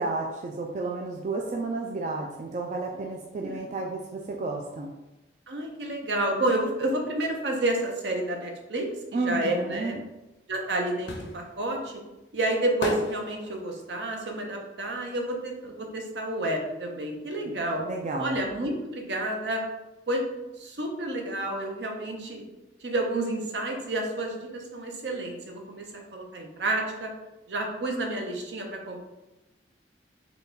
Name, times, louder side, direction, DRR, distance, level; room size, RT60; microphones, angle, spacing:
voice 1, 0.0-4.9 9.1-10.0 17.4-17.5 17.8-18.4, right 3 dB, 40° right, 0 dB, 0.3 m, -32 dB
voice 2, 5.5-9.9 10.5-11.9 12.3-17.8 18.2-19.6 20.1-20.2 20.6-22.4 22.8-25.8 26.1-27.1 27.5-29.0, right 1 dB, 70° right, 2 dB, 0.7 m, -30 dB
sound 1, 10.2-16.0 16.3-17.9 18.2-18.3, left 2 dB, 85° left, 0.7 m, -37 dB
3.9 x 2.2 x 3.9 m, 1.0 s
head